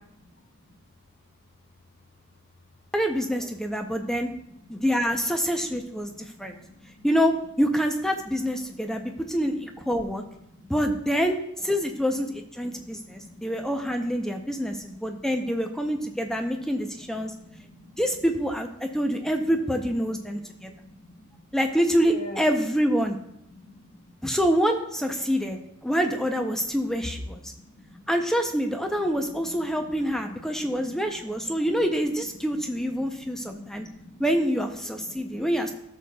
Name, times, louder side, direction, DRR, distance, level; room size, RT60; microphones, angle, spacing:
voice 1, 2.9-4.3 4.7-6.1 6.4-6.6 7.0-10.2 10.7-17.3 18.0-20.7 21.5-23.2 24.2-27.5 28.1-33.9 34.2-35.7, equal, ahead, 4 dB, 0.5 m, -26 dB
voice 2, 6.0-7.0 10.5-10.7 12.8-13.4 14.3-14.9 15.4-15.7 16.5-16.6 17.0-18.0 18.9-19.3 20.3-21.4 22.0-22.5 23.5-24.0 27.3-28.1 29.3-30.3 30.5-31.5 33.1-34.2 35.1-35.5, left 1 dB, 45° left, 3 dB, 1.0 m, -48 dB
14.0 x 6.4 x 2.3 m, 0.77 s
head